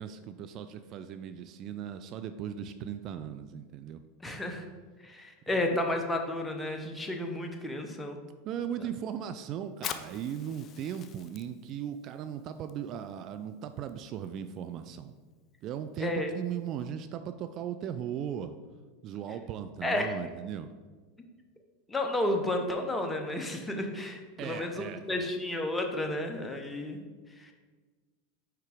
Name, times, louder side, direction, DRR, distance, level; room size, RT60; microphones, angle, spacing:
voice 1, 0.0-4.0 5.5-5.8 8.4-15.1 15.6-18.5 19.0-20.7 24.4-25.3, right 9 dB, 45° right, 10 dB, 0.3 m, -38 dB
voice 2, 4.2-4.6 5.0-8.2 16.0-16.3 19.8-20.1 21.9-27.0 27.4-27.5, left 1 dB, 10° left, 3 dB, 0.9 m, -32 dB
Fire, 9.7-16.9, left 8 dB, 40° left, 0.4 m, -47 dB
4.6 x 4.5 x 4.9 m, 1.4 s
hypercardioid pair, 95°, 0 cm